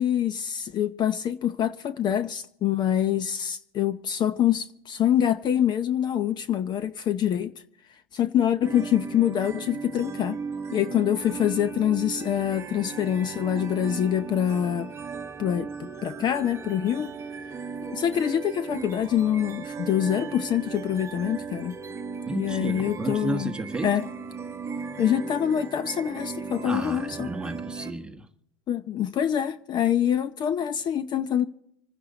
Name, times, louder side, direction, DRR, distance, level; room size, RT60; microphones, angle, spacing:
voice 1, 0.0-7.5 8.1-10.4 10.7-14.9 15.4-17.1 17.8-21.8 22.3-23.5 23.8-24.1 25.0-27.3 28.7-31.4, left 10 dB, 35° left, 0.7 m, -25 dB
sound 1, 8.6-27.9, right 5 dB, 20° right, 1.0 m, -37 dB
voice 2, 22.3-23.9 26.6-28.3, right 2 dB, 5° right, 1.3 m, -32 dB
26.0 x 10.0 x 3.9 m
hypercardioid pair, 105°, 13 cm